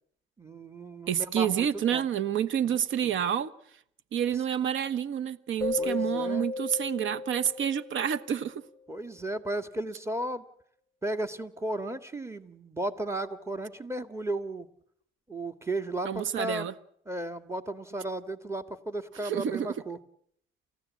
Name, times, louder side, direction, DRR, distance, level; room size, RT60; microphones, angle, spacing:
voice 1, 0.4-2.1 2.6-3.1 5.8-6.5 8.9-10.5 11.0-14.7 15.3-16.7 17.1-20.0, right 1 dB, 15° right, 1.9 m, -35 dB
voice 2, 1.1-3.5 4.1-8.5 16.0-16.7 19.2-19.7, right 9 dB, 75° right, 1.3 m, -28 dB
Keyboard (musical), 5.6-8.3, left 3 dB, 10° left, 1.1 m, -34 dB
29.5 x 15.0 x 8.5 m
cardioid pair, 90°, 20 cm